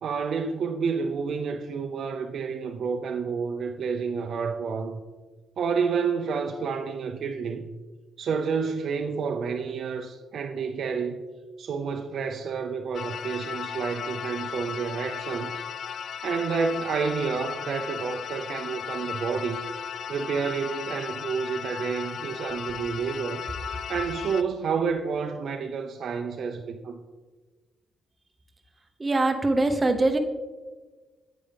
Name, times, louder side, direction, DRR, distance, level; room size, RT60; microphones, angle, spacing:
voice 1, 0.0-5.0 5.6-7.7 8.2-11.2 11.6-15.5 16.2-19.6 20.1-23.4 23.9-27.0, right 5 dB, 60° right, 0.5 m, -29 dB
sound 1, 12.9-24.4, left 8 dB, 60° left, 0.3 m, -36 dB
voice 2, 29.0-30.2, right 2 dB, 20° right, 0.8 m, -22 dB
9.3 x 8.3 x 3.4 m
cardioid pair, 140°, 0 cm